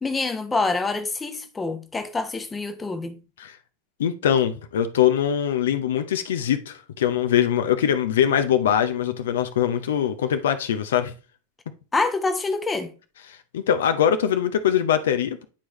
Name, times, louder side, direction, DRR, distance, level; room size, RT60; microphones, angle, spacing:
voice 1, 0.0-3.2 11.9-12.9, left 3 dB, 15° left, 0.9 m, -26 dB
voice 2, 4.0-11.1 13.3-15.4, left 9 dB, 60° left, 0.7 m, -22 dB
9.9 x 4.7 x 3.1 m
figure-of-eight pair, 90°, 0 cm